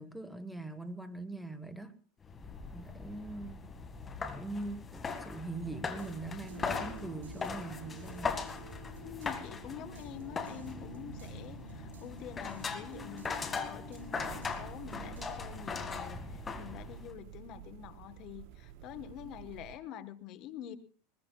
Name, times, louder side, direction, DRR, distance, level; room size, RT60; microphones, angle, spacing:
voice 1, 0.0-1.9 2.7-3.7 4.4-8.4, right 2 dB, 5° right, 1.5 m, -42 dB
sound 1, 2.2-17.1, left 5 dB, 25° left, 2.0 m, -40 dB
sound 2, 6.0-15.3, right 7 dB, 80° right, 5.7 m, -50 dB
voice 2, 9.0-20.8, left 10 dB, 50° left, 1.3 m, -46 dB
sound 3, 14.1-19.8, right 13 dB, 60° right, 0.8 m, -50 dB
22.0 x 20.5 x 2.4 m
hypercardioid pair, 100°, 0 cm